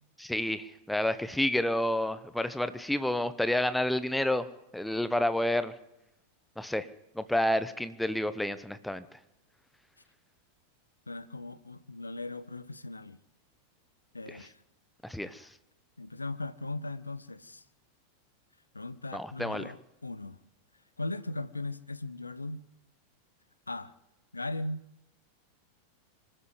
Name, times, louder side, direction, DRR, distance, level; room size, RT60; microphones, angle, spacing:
voice 1, 0.2-4.5 4.7-5.7 6.6-6.9 7.1-9.0 14.3-14.4 15.0-15.5 19.1-19.7, left 1 dB, 5° left, 1.2 m, -29 dB
voice 2, 11.1-13.2 14.1-14.6 16.0-17.6 18.7-20.4 21.0-22.6 23.7-23.9 24.3-24.8, left 2 dB, 80° left, 1.0 m, -38 dB
25.5 x 13.5 x 8.0 m
figure-of-eight pair, 90°, 0 cm